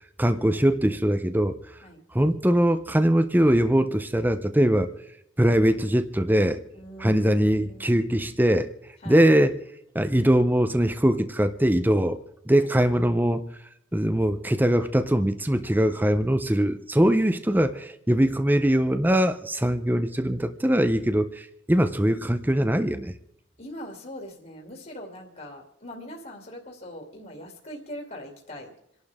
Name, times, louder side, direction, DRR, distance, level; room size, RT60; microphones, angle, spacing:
voice 1, 0.2-1.8 2.1-4.9 5.4-6.6 7.0-8.7 9.1-9.5 9.9-12.2 12.5-13.4 13.9-23.1, right 1 dB, 10° right, 10 dB, 0.7 m, -22 dB
voice 2, 6.7-8.5 9.0-9.2 12.6-12.7 16.5-17.4 23.6-28.7, equal, 45° left, 0 dB, 2.7 m, -42 dB
28.0 x 11.5 x 3.6 m, 0.77 s
head